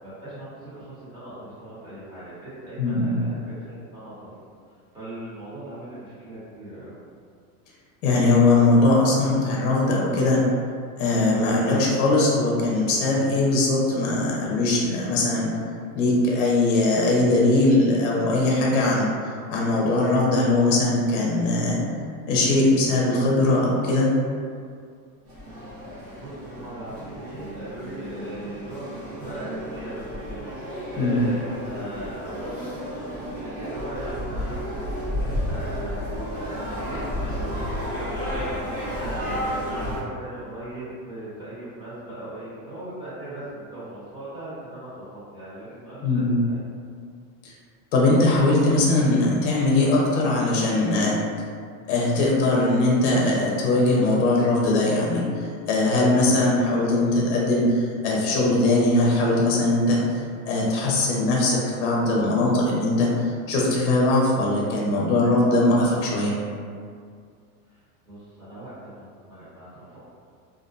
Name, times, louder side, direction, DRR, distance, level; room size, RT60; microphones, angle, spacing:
voice 1, 0.0-4.3 4.9-7.0 25.7-25.8 26.2-30.5 30.9-36.0 36.3-39.4 39.7-45.0 45.3-46.6 67.7-67.8 68.0-70.0, right 1 dB, 10° right, -13 dB, 1.0 m, -39 dB
voice 2, 2.8-3.2 8.0-10.4 11.0-15.5 15.9-19.1 19.5-21.8 22.3-24.1 31.0-31.2 46.0-46.4 47.4-47.5 47.9-51.1 51.9-66.3, left 2 dB, 60° left, -3 dB, 0.7 m, -21 dB
sound 1, 25.3-40.0, equal, 30° right, 0.9 m, -32 dB
2.5 x 2.1 x 2.5 m, 2.2 s
supercardioid pair, 155°, 41 cm